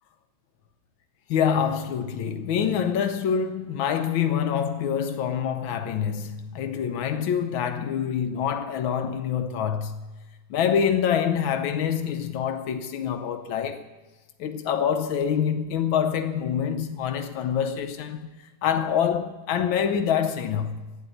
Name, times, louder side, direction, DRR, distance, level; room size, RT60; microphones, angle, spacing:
voice 1, 1.3-10.1 10.5-13.8 14.4-18.3 18.6-21.0, left 8 dB, 85° left, 1.6 m, -26 dB
12.0 x 9.0 x 9.1 m
omnidirectional pair, 2.1 m